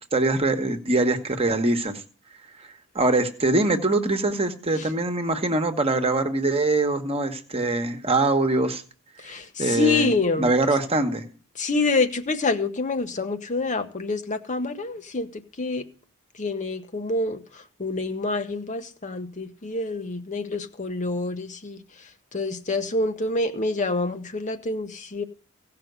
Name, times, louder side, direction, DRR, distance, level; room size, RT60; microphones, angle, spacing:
voice 1, 0.1-2.0 2.6-2.7 2.9-8.8 9.2-10.1 10.4-11.2, right 2 dB, 30° right, 1.3 m, -23 dB
voice 2, 9.2-10.5 11.6-15.9 16.4-21.8 22.3-25.2, left 3 dB, 35° left, 0.9 m, -27 dB
16.5 x 5.9 x 8.0 m
head